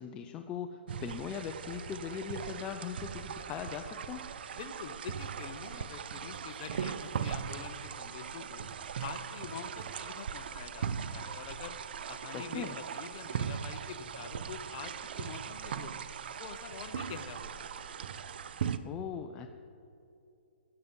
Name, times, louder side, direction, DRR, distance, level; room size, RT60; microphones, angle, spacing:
voice 1, 0.0-4.3 12.3-12.8 18.8-19.5, left 8 dB, 15° left, 6 dB, 0.4 m, -40 dB
sound 1, 0.9-18.8, right 7 dB, 55° right, 0.6 m, -39 dB
voice 2, 4.5-8.7 9.0-10.9 11.1-11.7 12.1-16.0 16.4-17.7, left 7 dB, 35° left, 8 dB, 0.9 m, -46 dB
16.0 x 9.3 x 5.5 m, 2.7 s
hypercardioid pair, 160°, 6 cm